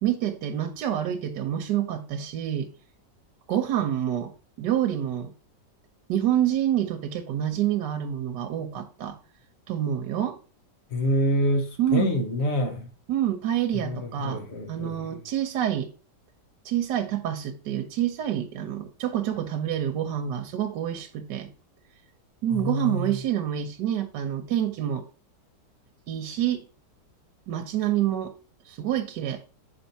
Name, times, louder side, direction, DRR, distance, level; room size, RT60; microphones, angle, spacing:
voice 1, 0.0-2.7 3.5-4.3 4.6-5.3 6.1-9.2 9.7-10.4 11.8-12.1 13.1-14.4 14.7-15.9 16.6-21.5 22.4-25.0 26.1-26.6 27.5-28.3 28.7-29.4, right 11 dB, 75° right, 1.4 m, -27 dB
voice 2, 10.9-12.9 13.7-15.2 22.5-23.2, equal, 45° left, 1.2 m, -27 dB
6.1 x 4.5 x 4.0 m
omnidirectional pair, 1.9 m